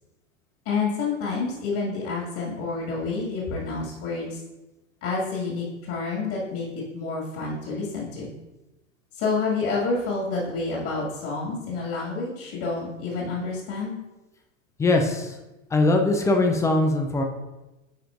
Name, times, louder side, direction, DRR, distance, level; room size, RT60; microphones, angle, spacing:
voice 1, 0.7-4.4 5.0-6.7 6.9-8.3 9.1-14.0, left 4 dB, 45° left, -4 dB, 2.1 m, -28 dB
voice 2, 14.8-15.4 15.7-17.2, left 2 dB, 10° left, 4 dB, 0.3 m, -21 dB
10.5 x 4.4 x 2.5 m, 1.0 s
hypercardioid pair, 95°, 39 cm